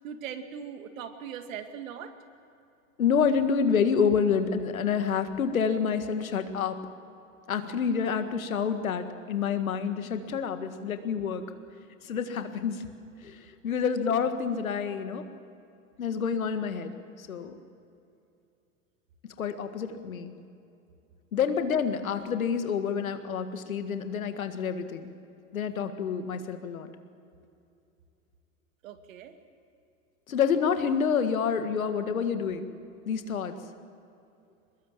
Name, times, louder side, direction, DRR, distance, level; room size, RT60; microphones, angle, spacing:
voice 1, 0.0-2.1 28.8-29.3, right 8 dB, 75° right, 7 dB, 2.2 m, -40 dB
voice 2, 3.0-6.8 7.5-11.5 12.0-12.9 13.2-15.3 16.0-16.9 17.2-17.6 19.4-20.3 21.3-25.1 25.5-26.9 30.3-32.7 33.1-33.5, left 6 dB, 90° left, 8 dB, 1.9 m, -28 dB
23.5 x 21.0 x 7.5 m, 2.6 s
hypercardioid pair, 100°, 40 cm